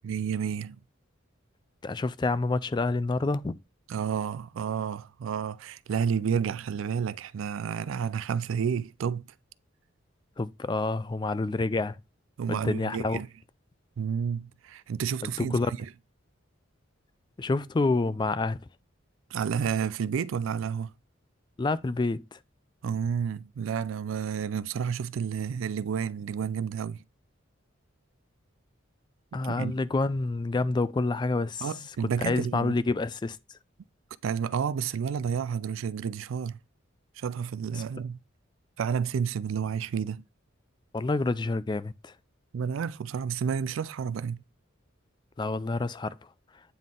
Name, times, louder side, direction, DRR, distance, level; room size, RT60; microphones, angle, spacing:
voice 1, 0.0-0.8 3.9-9.2 12.4-13.3 14.0-15.9 19.3-20.9 22.8-27.0 29.4-29.7 31.6-32.7 34.2-36.6 37.2-38.2 38.8-40.3 42.5-44.4, right 7 dB, 75° right, 0.3 m, -30 dB
voice 2, 1.8-3.6 10.4-12.0 12.5-13.2 15.4-15.7 17.4-18.6 21.6-22.4 29.3-31.7 32.2-33.4 37.7-37.8 40.9-42.1 45.4-46.3, left 3 dB, 20° left, 0.3 m, -28 dB
9.1 x 3.9 x 3.7 m
head